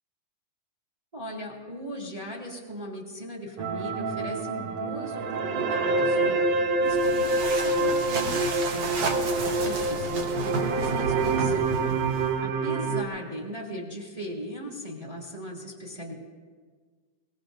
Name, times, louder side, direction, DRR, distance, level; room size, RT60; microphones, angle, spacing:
voice 1, 1.1-8.4 8.7-11.7 12.1-16.1, equal, 15° right, -1 dB, 1.5 m, -38 dB
sound 1, 3.6-13.0, right 3 dB, 85° right, 1.4 m, -26 dB
sound 2, 6.8-12.4, right 3 dB, 65° right, 1.6 m, -32 dB
23.5 x 20.5 x 2.6 m, 1.5 s
omnidirectional pair, 4.2 m